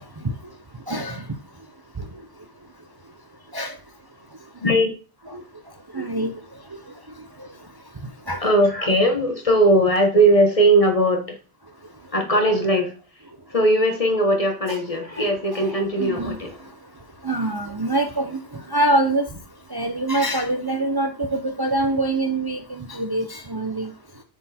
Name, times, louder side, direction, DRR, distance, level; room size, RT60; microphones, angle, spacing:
voice 1, 0.9-1.2 3.5-3.7 5.9-6.3 8.3-8.4 14.7-14.8 16.0-16.4 17.2-18.3 18.7-19.3 19.7-22.6 22.9-23.9, right 2 dB, 30° right, 5 dB, 0.5 m, -24 dB
voice 2, 4.6-4.9 8.4-11.4 12.1-12.9 13.5-16.7, right 1 dB, 30° left, 4 dB, 1.2 m, -19 dB
7.3 x 4.4 x 4.2 m, 0.35 s
omnidirectional pair, 1.2 m